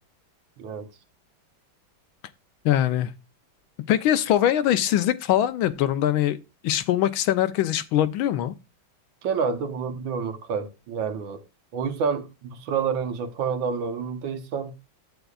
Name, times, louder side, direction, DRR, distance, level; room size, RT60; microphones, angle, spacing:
voice 1, 2.6-3.1 3.9-8.5, left 11 dB, 85° left, 1.5 m, -22 dB
voice 2, 9.2-11.4 11.7-14.7, right 6 dB, 75° right, 1.7 m, -28 dB
11.5 x 8.1 x 2.4 m
omnidirectional pair, 2.2 m